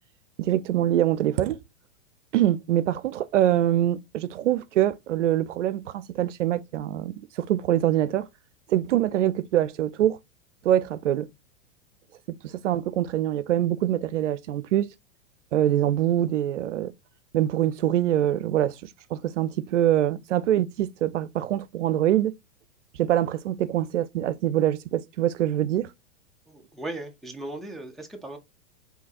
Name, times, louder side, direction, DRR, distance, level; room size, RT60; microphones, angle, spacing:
voice 1, 0.4-1.6 2.3-8.3 8.7-10.2 10.6-11.3 12.3-14.9 15.5-16.9 17.3-22.3 23.0-25.9, right 12 dB, 80° right, 0.5 m, -24 dB
voice 2, 26.5-28.4, right 2 dB, ahead, 0.4 m, -37 dB
3.7 x 2.8 x 2.6 m
hypercardioid pair, 110°, 36 cm